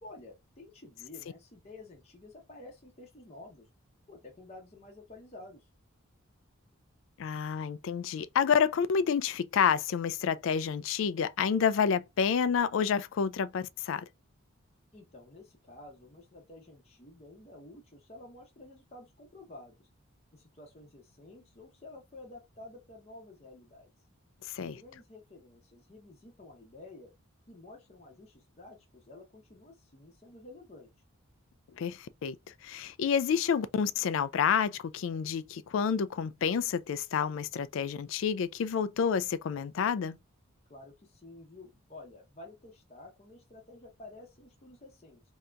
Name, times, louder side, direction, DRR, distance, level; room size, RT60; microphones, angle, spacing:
voice 1, 0.0-3.7 4.1-5.7 14.9-19.9 20.3-23.9 24.6-27.1 27.5-30.9 40.7-45.2, left 2 dB, 30° left, 0.7 m, -51 dB
voice 2, 7.2-14.1 24.5-24.8 31.8-32.4 32.6-40.2, left 7 dB, 60° left, 0.3 m, -29 dB
2.8 x 2.5 x 3.3 m
head